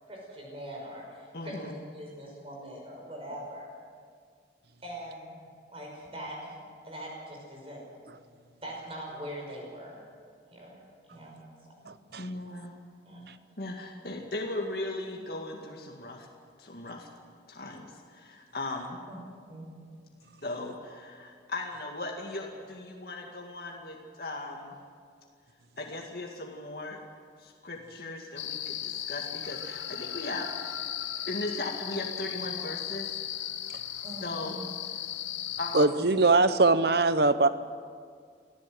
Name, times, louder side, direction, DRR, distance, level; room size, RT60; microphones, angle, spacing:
voice 1, 0.1-3.7 4.8-5.4 5.7-7.8 8.6-10.0 10.5-10.8 11.1-11.4 11.8-11.9 13.0-13.2 19.1-19.2 19.5-19.7 33.4-33.5 34.0-34.6, equal, 30° right, -1 dB, 5.5 m, -42 dB
voice 2, 1.3-1.7 12.2-12.8 13.6-16.3 16.6-17.1 17.5-19.0 20.4-24.7 25.8-27.0 27.4-30.9 31.3-33.3 34.2-34.6 35.0-35.1 35.6-36.1, left 2 dB, 55° left, 0 dB, 2.1 m, -38 dB
voice 3, 11.9-12.2 35.7-37.5, right 3 dB, 60° right, 13 dB, 0.9 m, -22 dB
sound 1, 28.4-35.9, left 11 dB, 85° left, 1.2 m, -36 dB
24.5 x 15.0 x 7.9 m, 2.1 s
head